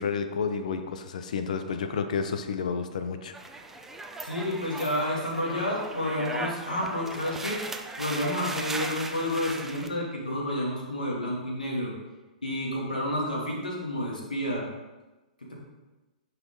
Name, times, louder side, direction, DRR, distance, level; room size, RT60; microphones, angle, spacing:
voice 1, 0.0-3.4, left 5 dB, 60° left, 8 dB, 0.9 m, -30 dB
sound 1, 3.3-9.9, right 2 dB, 5° right, 0.7 m, -37 dB
voice 2, 4.2-7.6 8.0-11.9 12.4-14.7 15.5-15.6, left 1 dB, 80° left, -2 dB, 2.6 m, -30 dB
11.0 x 5.8 x 3.8 m, 1.1 s
figure-of-eight pair, 110°, 4 cm